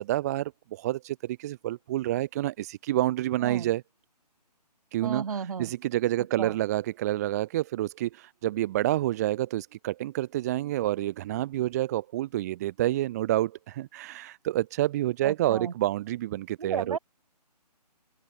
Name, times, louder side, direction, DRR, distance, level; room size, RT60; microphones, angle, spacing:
voice 1, 0.0-3.8 4.9-17.0, right 14 dB, 25° right, 1.1 m, -28 dB
voice 2, 5.0-5.7 6.4-6.5 15.2-15.7 16.6-17.0, right 6 dB, 55° right, 6.4 m, -33 dB
open air
figure-of-eight pair, 150°, 21 cm